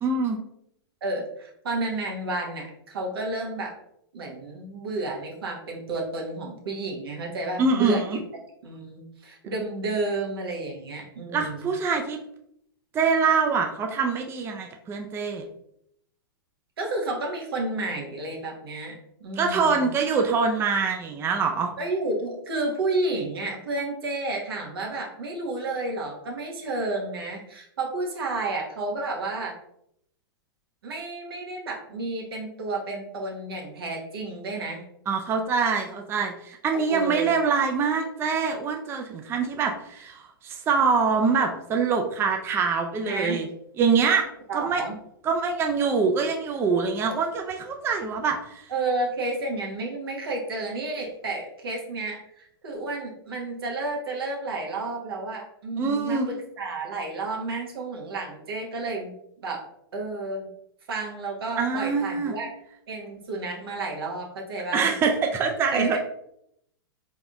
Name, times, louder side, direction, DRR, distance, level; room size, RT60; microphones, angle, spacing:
voice 1, 0.0-0.4 7.6-8.2 11.3-12.2 12.9-15.4 19.4-21.7 35.1-43.5 43.8-44.3 44.5-44.8 45.2-48.7 55.8-56.3 61.6-62.3 64.7-66.0, right 5 dB, 20° right, 3 dB, 0.4 m, -24 dB
voice 2, 1.0-3.7 4.1-8.2 8.6-11.7 16.8-18.9 19.2-19.9 21.8-29.5 30.8-34.8 36.7-37.3 43.0-43.4 44.5-45.0 48.7-59.1 59.4-59.6 59.9-60.5 60.9-62.5 62.9-64.9 65.7-66.0, right 2 dB, 80° right, -1 dB, 1.3 m, -31 dB
3.9 x 3.5 x 2.3 m, 0.75 s
hypercardioid pair, 120°, 12 cm